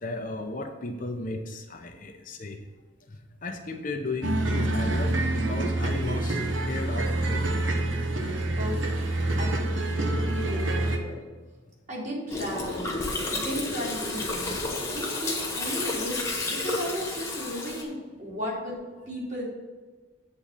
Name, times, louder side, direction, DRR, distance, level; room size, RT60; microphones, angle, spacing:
voice 1, 0.0-2.6 3.1-7.8, left 2 dB, 45° left, 4 dB, 0.8 m, -35 dB
sound 1, 4.2-11.0, right 2 dB, 80° right, 1.1 m, -27 dB
voice 2, 8.6-11.2 11.9-12.9 13.3-14.6 14.9-18.8 19.1-19.5, equal, 40° right, -4 dB, 2.8 m, -35 dB
Gurgling, 12.3-17.8, left 2 dB, 15° left, 1.4 m, -31 dB
8.4 x 4.3 x 7.3 m, 1.4 s
head